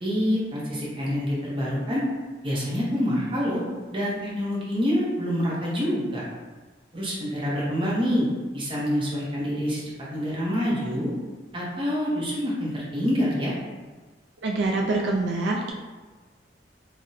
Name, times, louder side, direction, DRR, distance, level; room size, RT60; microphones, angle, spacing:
voice 1, 0.0-2.0 2.4-3.6 3.9-6.2 6.9-8.3 8.5-9.8 10.1-11.1 11.5-13.6, equal, 30° right, -6 dB, 0.7 m, -26 dB
voice 2, 14.4-15.7, right 2 dB, 75° right, 0 dB, 0.3 m, -25 dB
2.5 x 2.1 x 3.8 m, 1.3 s
head